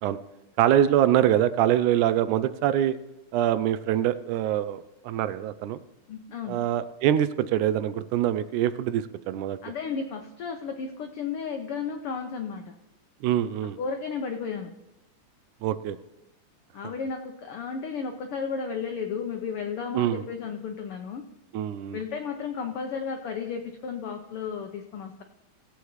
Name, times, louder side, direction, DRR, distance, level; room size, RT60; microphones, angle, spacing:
voice 1, 0.6-3.0 3.3-5.8 6.5-9.6 13.2-13.8 15.6-16.0 19.9-20.2 21.5-22.0, right 11 dB, 80° right, 13 dB, 2.0 m, -24 dB
voice 2, 6.1-6.6 9.6-12.7 13.8-14.7 16.7-21.2 21.9-25.2, left 5 dB, 85° left, 4 dB, 1.2 m, -33 dB
19.0 x 8.2 x 3.1 m, 0.91 s
omnidirectional pair, 3.5 m